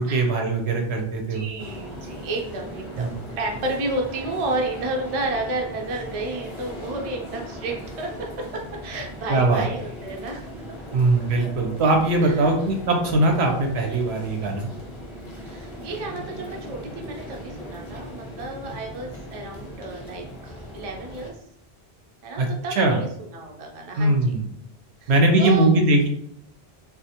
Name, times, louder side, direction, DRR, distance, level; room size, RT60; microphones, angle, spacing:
voice 1, 0.0-1.5 3.0-3.1 9.3-9.6 10.9-14.7 22.4-23.0 24.0-24.5 25.1-26.1, right 2 dB, 90° right, 3 dB, 0.8 m, -21 dB
voice 2, 1.3-8.1 8.5-10.5 11.4-11.5 12.2-12.5 15.4-21.3 22.2-24.4 25.0-25.1 25.4-25.8, right 2 dB, 50° right, 1 dB, 0.4 m, -31 dB
sound 1, 1.6-21.3, equal, 35° left, 0.5 m, -39 dB
2.5 x 2.0 x 2.7 m, 0.72 s
omnidirectional pair, 1.1 m